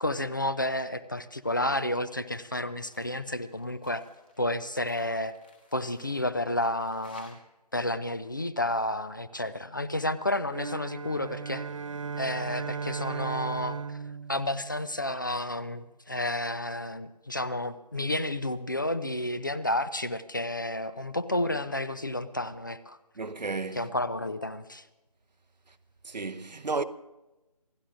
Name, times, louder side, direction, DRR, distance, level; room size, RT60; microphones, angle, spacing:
voice 1, 0.0-4.0 4.4-5.4 5.7-7.4 7.7-11.7 12.2-14.0 14.3-23.0 23.7-24.9, left 1 dB, 30° left, 0.5 m, -31 dB
sound 1, 1.6-2.0 2.3-7.3, left 2 dB, 15° left, 1.1 m, -58 dB
sound 2, 10.5-15.2, right 5 dB, 50° right, 0.5 m, -36 dB
voice 2, 23.2-23.9 26.0-26.8, right 3 dB, 85° right, 0.9 m, -33 dB
27.5 x 16.5 x 2.5 m
figure-of-eight pair, 165°, 21 cm